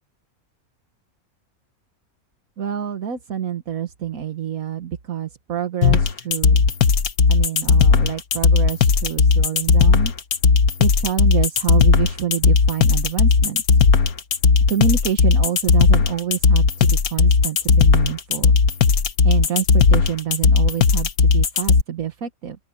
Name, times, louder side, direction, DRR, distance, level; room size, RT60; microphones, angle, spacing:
voice 1, 2.6-6.6 7.3-10.1 10.8-13.6 14.7-18.6 19.2-22.6, right 9 dB, 75° right, 1.7 m, -27 dB
sound 1, 5.8-21.8, left 5 dB, 85° left, 1.8 m, -16 dB
open air
omnidirectional pair, 1.5 m